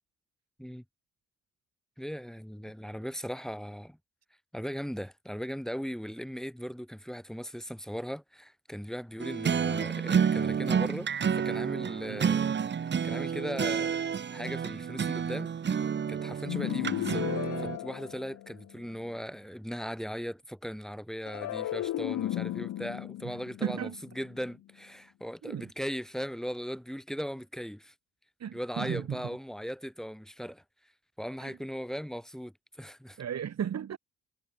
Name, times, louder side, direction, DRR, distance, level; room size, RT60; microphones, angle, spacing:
voice 1, 2.0-4.0 4.5-12.4 12.8-14.1 14.3-15.5 16.1-17.3 17.6-23.9 24.2-27.9 28.5-30.6 31.2-33.2, equal, ahead, 3.7 m, -38 dB
sound 1, 9.2-17.8, right 7 dB, 35° right, 0.9 m, -30 dB
sound 2, 16.5-18.8 21.3-24.6, left 13 dB, 70° left, 2.3 m, -35 dB
voice 2, 23.6-24.0 25.4-25.7 28.4-29.4 31.4-31.6 33.2-34.0, right 9 dB, 55° right, 3.1 m, -35 dB
supercardioid pair, 60°, 31 cm